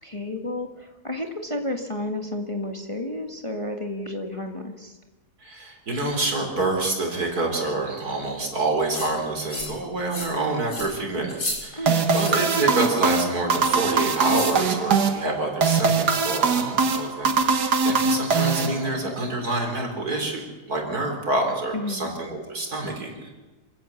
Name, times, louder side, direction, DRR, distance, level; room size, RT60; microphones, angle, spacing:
voice 1, 0.0-5.0 11.7-12.0 21.7-22.1, left 1 dB, 20° left, 4 dB, 1.6 m, -31 dB
voice 2, 5.4-23.3, right 2 dB, 70° right, 2 dB, 4.6 m, -27 dB
sound 1, 8.9-9.1 9.5-9.8 10.1-10.4 10.7-10.9 11.3-11.6 12.1-12.3 12.8-13.1 14.2-14.6, left 2 dB, 75° left, 6.3 m, -33 dB
sound 2, 11.9-19.2, right 4 dB, 85° right, 2.0 m, -22 dB
26.5 x 16.5 x 7.2 m, 1.2 s
omnidirectional pair, 1.7 m